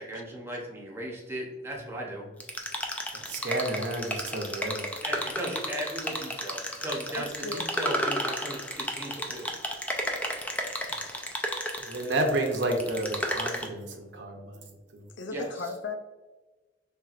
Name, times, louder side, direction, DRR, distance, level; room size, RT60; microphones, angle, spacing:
voice 1, 0.0-2.3 5.0-9.5 12.3-12.4 15.3-15.7, right 1 dB, 15° right, -2 dB, 0.7 m, -37 dB
sound 1, 2.4-13.7, equal, 5° left, 0.4 m, -33 dB
voice 2, 3.1-4.9 11.8-15.1, right 1 dB, 70° right, 3 dB, 0.7 m, -31 dB
voice 3, 7.1-7.7 15.2-15.9, left 3 dB, 80° left, 7 dB, 0.5 m, -36 dB
4.5 x 3.3 x 2.4 m, 1.2 s
head